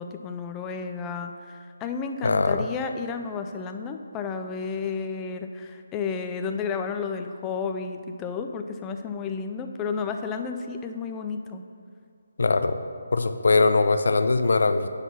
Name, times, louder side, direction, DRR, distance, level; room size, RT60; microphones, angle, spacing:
voice 1, 0.0-11.6, left 5 dB, 15° left, 6 dB, 0.5 m, -32 dB
voice 2, 2.2-2.6 12.4-12.8 13.1-14.9, left 3 dB, 65° left, 9 dB, 0.6 m, -21 dB
10.0 x 4.1 x 6.9 m, 2.4 s
figure-of-eight pair, 150°, 0 cm